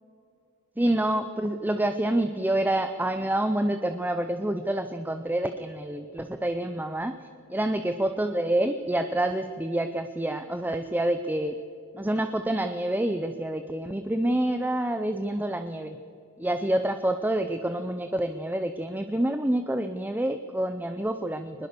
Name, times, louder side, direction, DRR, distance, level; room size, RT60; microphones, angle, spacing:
voice 1, 0.8-7.1 7.5-11.6 11.9-16.0 16.4-21.7, right 1 dB, 10° right, 8 dB, 0.6 m, -27 dB
22.5 x 20.5 x 6.8 m, 2.7 s
head